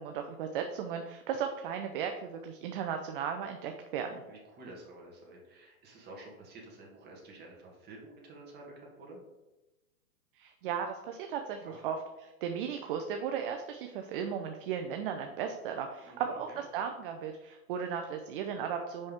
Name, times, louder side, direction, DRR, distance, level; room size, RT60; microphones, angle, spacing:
voice 1, 0.0-4.2 10.3-19.1, right 7 dB, 40° right, 5 dB, 0.5 m, -36 dB
voice 2, 4.2-9.2 11.6-11.9 16.0-16.6, right 2 dB, 20° right, -2 dB, 1.8 m, -50 dB
5.8 x 5.2 x 3.6 m, 1.0 s
hypercardioid pair, 135°, 44 cm